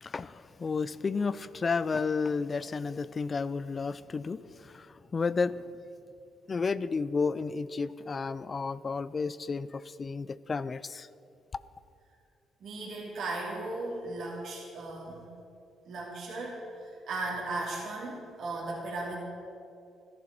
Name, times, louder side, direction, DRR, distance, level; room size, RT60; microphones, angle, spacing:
voice 1, 0.0-5.6 6.5-11.1, left 4 dB, 35° left, 0.4 m, -32 dB
voice 2, 12.6-15.2 15.8-19.2, right 2 dB, 65° right, 2.7 m, -36 dB
14.0 x 10.5 x 6.0 m
cardioid pair, 90°, 0 cm